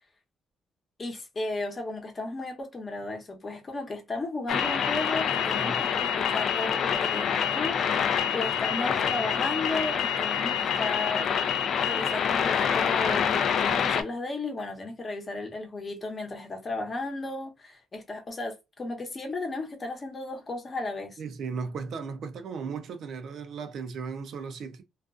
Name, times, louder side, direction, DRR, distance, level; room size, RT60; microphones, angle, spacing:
voice 1, 1.0-11.4 11.8-21.2, left 2 dB, 35° left, 0.8 m, -34 dB
sound 1, 4.5-14.0, left 7 dB, 65° left, 0.3 m, -26 dB
voice 2, 21.2-24.8, right 5 dB, 65° right, 0.4 m, -36 dB
2.4 x 2.3 x 2.4 m
cardioid pair, 90°, 0 cm